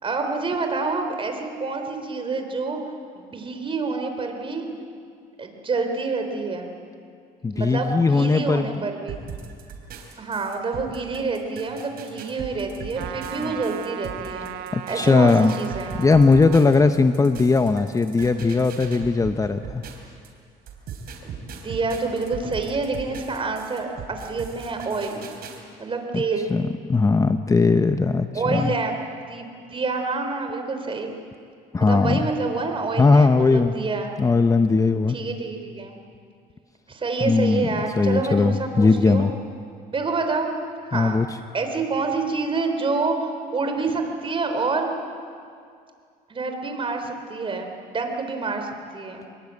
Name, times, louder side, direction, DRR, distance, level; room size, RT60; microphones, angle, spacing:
voice 1, 0.0-2.8 3.1-4.8 5.4-6.7 7.5-9.2 10.2-14.5 14.9-15.9 21.2-25.2 25.8-26.5 28.3-29.0 29.3-31.1 31.8-34.1 35.1-35.9 36.9-39.3 39.9-40.6 40.8-41.2 41.5-44.9 46.3-49.2, right 3 dB, 30° right, 5 dB, 4.0 m, -27 dB
voice 2, 7.4-8.8 13.4-13.5 14.7-15.6 16.0-19.8 26.1-26.2 26.5-28.7 31.7-32.3 33.0-33.7 34.2-35.2 37.2-37.7 38.0-39.3 40.9-41.3, left 4 dB, 20° left, 9 dB, 0.8 m, -19 dB
sound 1, 9.1-20.3 20.7-25.6, right 6 dB, 65° right, 3.9 m, -39 dB
Trumpet, 12.9-16.7, right 11 dB, 90° right, 1.3 m, -36 dB
25.0 x 21.5 x 8.5 m, 2.2 s
cardioid pair, 110°, 17 cm